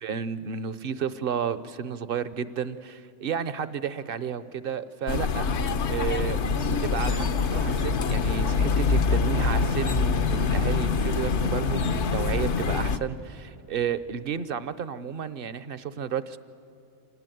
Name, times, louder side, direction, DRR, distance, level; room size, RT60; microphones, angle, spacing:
voice 1, 0.0-5.6 5.9-6.4 6.8-16.4, right 7 dB, 55° right, 15 dB, 0.9 m, -32 dB
sound 1, 5.1-13.0, left 5 dB, 70° left, 1.1 m, -25 dB
25.5 x 18.5 x 9.2 m, 2.9 s
omnidirectional pair, 1.2 m